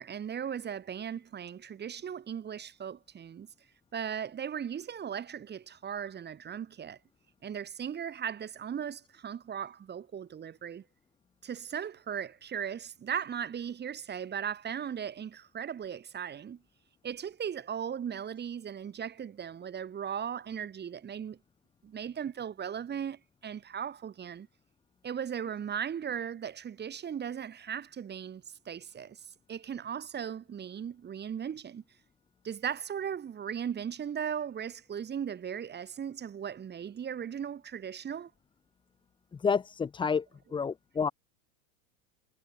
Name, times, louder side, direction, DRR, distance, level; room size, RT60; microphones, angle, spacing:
voice 1, 0.0-3.5 3.9-7.0 7.4-10.8 11.4-16.6 17.0-21.4 21.8-24.5 25.0-31.8 32.4-38.3, right 8 dB, 25° right, 2.5 m, -37 dB
voice 2, 39.3-40.3 40.5-41.1, left 6 dB, 15° left, 0.6 m, -29 dB
supercardioid pair, 110°, 38 cm